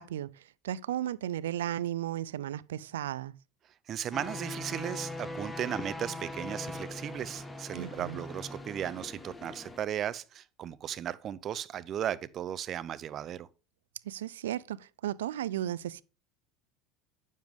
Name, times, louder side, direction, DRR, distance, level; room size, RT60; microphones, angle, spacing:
voice 1, 0.0-3.3 7.7-8.2 14.0-16.0, right 12 dB, 90° right, 0.4 m, -35 dB
voice 2, 3.9-13.5, right 10 dB, 45° right, 0.6 m, -36 dB
sound 1, 4.1-9.8, left 2 dB, 15° left, 1.3 m, -41 dB
9.2 x 7.3 x 3.5 m
hypercardioid pair, 90°, 0 cm